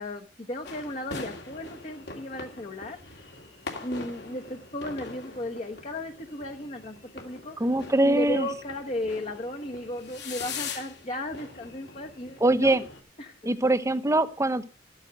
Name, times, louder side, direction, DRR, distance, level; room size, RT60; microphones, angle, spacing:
voice 1, 0.0-3.0 3.8-7.5 8.0-12.8 13.2-13.4, left 1 dB, 35° left, 2 dB, 1.1 m, -35 dB
sound 1, 0.6-13.0, left 4 dB, 60° left, 2.6 m, -42 dB
voice 2, 7.6-8.5 12.4-12.8 13.4-14.6, right 1 dB, 15° right, 12 dB, 0.8 m, -23 dB
13.5 x 9.1 x 5.2 m, 0.35 s
head